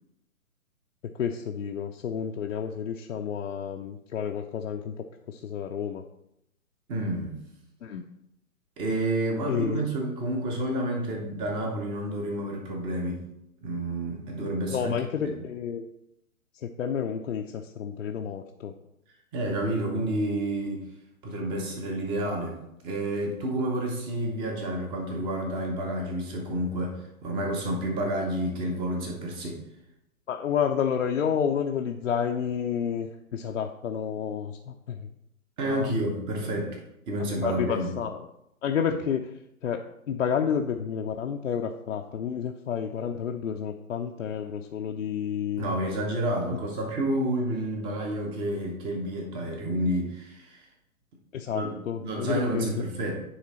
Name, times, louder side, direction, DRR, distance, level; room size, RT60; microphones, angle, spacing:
voice 1, 1.2-6.0 7.8-8.0 9.5-9.9 14.7-15.9 16.6-18.7 30.3-35.1 35.6-35.9 37.2-38.2 38.6-39.3 39.6-45.6 51.3-52.8, left 7 dB, 60° left, 3 dB, 0.6 m, -30 dB
voice 2, 6.9-7.4 8.8-13.2 13.6-15.0 15.2-15.4 19.3-20.8 21.2-22.6 22.8-29.6 35.6-36.8 37.1-37.9 45.6-50.6 51.5-53.2, right 1 dB, 10° right, 2 dB, 0.7 m, -30 dB
9.5 x 3.2 x 4.2 m, 0.81 s
figure-of-eight pair, 130°, 43 cm